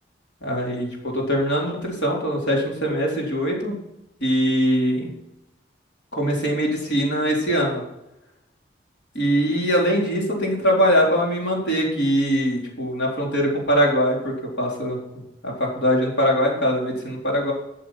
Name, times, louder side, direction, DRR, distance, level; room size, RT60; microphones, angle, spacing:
voice 1, 0.4-3.7 4.2-5.1 6.1-7.8 9.1-15.0 15.4-17.5, equal, 75° left, -2 dB, 4.2 m, -22 dB
13.0 x 7.4 x 5.9 m, 0.89 s
head